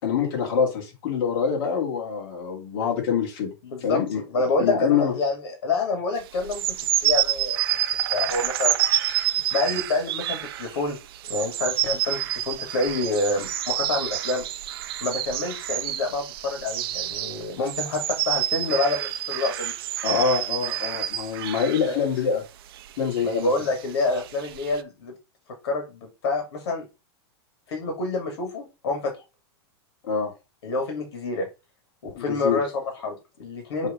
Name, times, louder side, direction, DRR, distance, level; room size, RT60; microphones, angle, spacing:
voice 1, 0.0-3.5 3.8-4.2 4.6-5.1 20.0-22.4 23.0-23.5 30.0-30.3 32.1-32.6 33.8-33.9, left 6 dB, 55° left, -1 dB, 2.9 m, -25 dB
voice 2, 3.6-6.8 7.0-7.8 8.1-8.8 9.5-11.0 11.3-14.5 15.0-19.7 21.9-22.0 23.2-25.1 25.6-26.9 27.7-29.1 30.6-31.5 32.0-33.9, left 3 dB, 75° left, 3 dB, 2.7 m, -27 dB
sound 1, 6.4-22.0 22.7-24.8, right 13 dB, 60° right, 0.7 m, -28 dB
6.4 x 3.5 x 5.3 m, 0.27 s
supercardioid pair, 170°, 14 cm